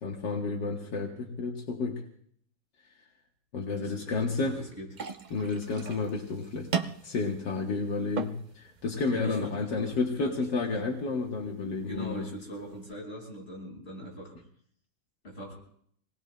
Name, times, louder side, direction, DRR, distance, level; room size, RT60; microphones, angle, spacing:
voice 1, 0.0-2.0 3.5-4.6 5.3-6.7 7.0-12.2, left 4 dB, 75° left, 0 dB, 2.0 m, -31 dB
voice 2, 3.8-4.9 9.1-10.7 11.9-14.3 15.2-15.5, equal, 35° left, -3 dB, 6.5 m, -41 dB
sound 1, 4.9-12.9, right 6 dB, 70° right, 0.4 m, -40 dB
28.0 x 19.5 x 2.2 m, 0.63 s
omnidirectional pair, 1.9 m